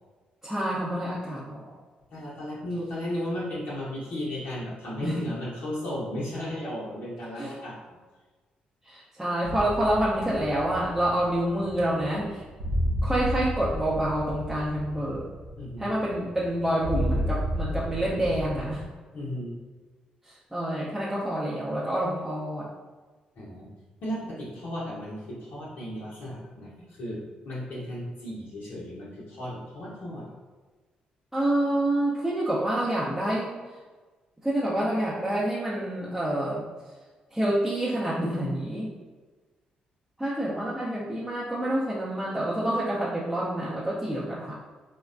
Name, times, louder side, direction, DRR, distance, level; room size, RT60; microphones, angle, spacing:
voice 1, 0.4-1.7 5.0-5.2 7.4-7.6 8.8-12.4 13.0-15.3 15.8-18.8 20.2-22.7 31.3-33.5 34.4-36.6 37.3-38.9 40.2-44.5, right 1 dB, 10° right, -8 dB, 0.6 m, -27 dB
voice 2, 2.1-8.0 15.6-15.9 19.1-19.6 23.4-23.7 24.0-30.2, left 1 dB, 65° left, -7 dB, 0.7 m, -35 dB
sound 1, 9.4-18.8, equal, 80° right, 0.5 m, -32 dB
3.1 x 2.1 x 2.5 m, 1.3 s
hypercardioid pair, 50°, 3 cm